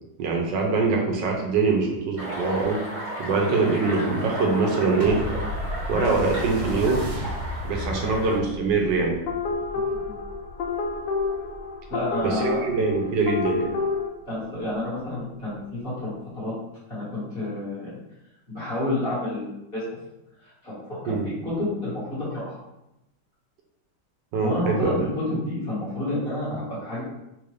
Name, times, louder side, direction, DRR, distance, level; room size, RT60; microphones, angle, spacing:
voice 1, 0.2-2.8 3.2-5.2 5.9-7.1 7.6-9.2 12.2-13.7 21.1-21.3 24.3-25.1, right 4 dB, 80° right, 0 dB, 1.3 m, -23 dB
sound 1, 2.2-8.4, right 1 dB, 45° right, 1.6 m, -34 dB
sound 2, 5.0-13.8 14.5-14.6, left 1 dB, 60° right, 1.0 m, -35 dB
sound 3, 9.3-14.1, left 4 dB, 75° left, 1.2 m, -29 dB
voice 2, 11.9-12.6 14.3-16.5 16.9-18.0 18.5-19.5 19.7-20.0 20.4-21.1 21.4-22.6 24.4-27.0, left 1 dB, 35° left, -10 dB, 1.6 m, -29 dB
3.6 x 2.5 x 3.2 m, 0.91 s
omnidirectional pair, 2.0 m